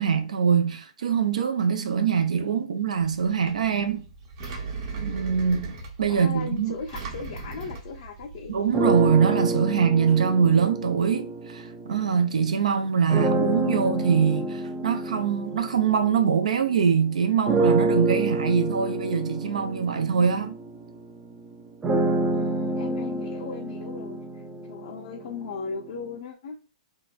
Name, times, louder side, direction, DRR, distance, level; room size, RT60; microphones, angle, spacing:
voice 1, 0.0-4.0 4.9-5.7 6.0-6.7 8.5-20.5, right 6 dB, 80° right, 0.5 m, -23 dB
Engine, 3.0-9.1, right 4 dB, 45° right, 0.8 m, -38 dB
voice 2, 6.1-8.5 22.3-24.2 24.7-26.6, left 5 dB, 60° left, 0.5 m, -37 dB
sound 1, 8.7-12.3 13.1-16.9 17.5-25.4, right 2 dB, 15° right, 0.4 m, -28 dB
2.8 x 2.2 x 2.2 m
hypercardioid pair, 130°, 4 cm